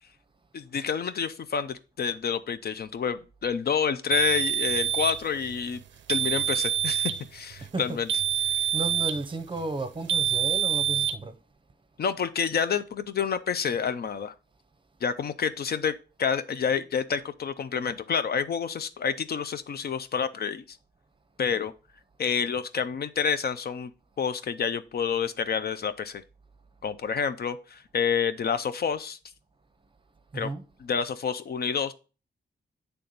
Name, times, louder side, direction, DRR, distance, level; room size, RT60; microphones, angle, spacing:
voice 1, 0.5-5.8 6.1-8.1 12.0-14.3 15.0-20.8 21.4-21.7 22.2-23.9 24.2-26.2 26.8-29.2 30.3-30.5 30.8-31.9, left 7 dB, 55° left, 0.5 m, -28 dB
sound 1, 4.1-5.2 6.1-7.2 8.1-9.2 10.1-11.2, right 9 dB, 80° right, 0.4 m, -26 dB
voice 2, 7.6-8.0 8.7-11.3 30.3-30.6, right 3 dB, 25° right, 0.6 m, -33 dB
8.3 x 3.4 x 3.9 m
wide cardioid pair, 130°, 19 cm